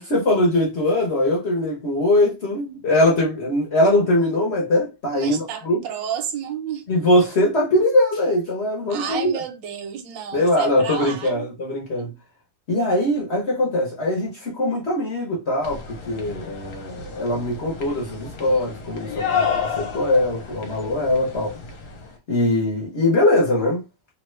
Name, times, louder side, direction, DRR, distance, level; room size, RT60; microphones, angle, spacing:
voice 1, 0.0-5.8 6.9-9.4 10.3-12.1 12.7-21.6 22.3-23.8, left 1 dB, 50° left, 0.8 m, -21 dB
voice 2, 5.1-6.9 8.9-11.5 12.0-12.1, right 8 dB, 80° right, 1.3 m, -31 dB
sound 1, 15.6-22.1, left 6 dB, 70° left, 1.1 m, -31 dB
3.0 x 2.2 x 3.1 m
omnidirectional pair, 2.0 m